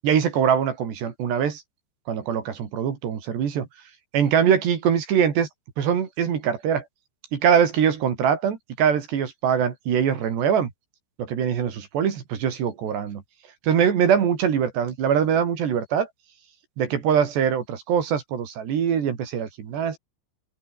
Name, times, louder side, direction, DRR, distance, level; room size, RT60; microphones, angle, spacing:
voice 1, 0.0-1.6 2.1-3.7 4.1-5.5 5.8-6.8 7.3-10.7 11.2-13.2 13.6-16.1 16.8-20.0, right 8 dB, 65° right, 5.1 m, -23 dB
open air
omnidirectional pair, 5.4 m